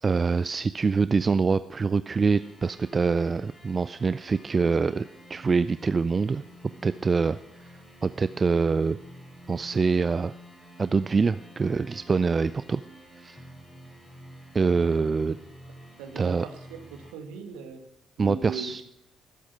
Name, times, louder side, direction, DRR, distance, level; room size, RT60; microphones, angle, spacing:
voice 1, 0.0-6.4 6.8-7.4 8.0-9.0 9.5-10.3 10.8-12.8 13.2-13.4 14.5-15.4 16.2-16.5 18.2-18.8, right 4 dB, 35° right, 14 dB, 0.4 m, -25 dB
sound 1, 2.1-17.1, equal, 20° left, 5.9 m, -50 dB
voice 2, 16.0-16.6 16.9-17.8 18.2-18.8, right 5 dB, 70° right, 3 dB, 2.1 m, -39 dB
19.0 x 8.4 x 6.1 m, 0.83 s
figure-of-eight pair, 45°, 0 cm